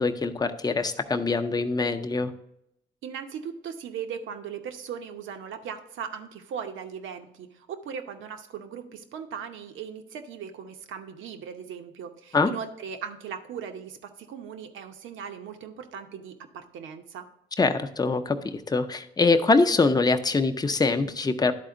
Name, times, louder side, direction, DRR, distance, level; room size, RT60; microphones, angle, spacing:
voice 1, 0.0-2.3 12.3-12.5 17.6-21.5, left 3 dB, 20° left, 7 dB, 0.6 m, -24 dB
voice 2, 3.0-17.3, right 7 dB, 80° right, 7 dB, 0.9 m, -38 dB
11.0 x 4.2 x 3.7 m, 0.80 s
cardioid pair, 90°, 20 cm